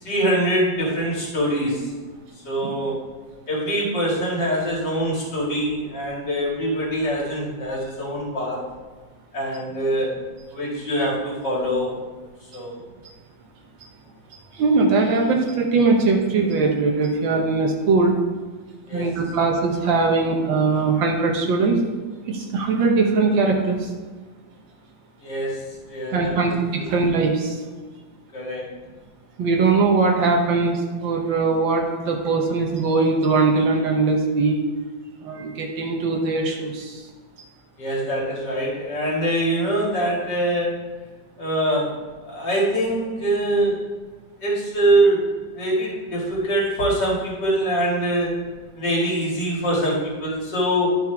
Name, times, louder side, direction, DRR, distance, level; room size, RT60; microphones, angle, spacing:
voice 1, 0.0-1.9 2.4-3.0 3.5-8.6 9.3-10.1 10.5-12.0 12.5-12.8 18.9-19.1 25.2-26.5 26.8-26.9 28.3-28.7 37.8-40.8 41.4-42.0 42.3-43.8 44.4-48.4 48.8-51.0, right 1 dB, 65° left, -5 dB, 3.0 m, -23 dB
voice 2, 14.6-18.2 18.9-21.8 22.3-23.8 26.1-27.5 29.4-34.6 35.2-36.9, right 4 dB, 85° right, 1 dB, 1.8 m, -20 dB
11.5 x 6.2 x 3.5 m, 1.4 s
omnidirectional pair, 2.0 m